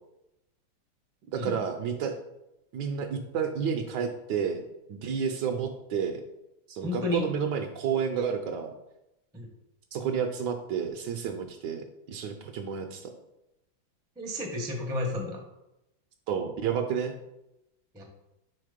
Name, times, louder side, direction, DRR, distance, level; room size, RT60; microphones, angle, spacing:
voice 1, 1.3-2.1 2.7-6.2 6.7-8.7 9.9-13.1 16.3-17.1, right 7 dB, 70° right, 5 dB, 1.1 m, -30 dB
voice 2, 6.8-7.2 9.3-9.5 14.2-15.4 17.9-18.0, left 2 dB, 5° right, 0 dB, 0.4 m, -32 dB
4.6 x 4.1 x 5.0 m, 0.89 s
omnidirectional pair, 2.1 m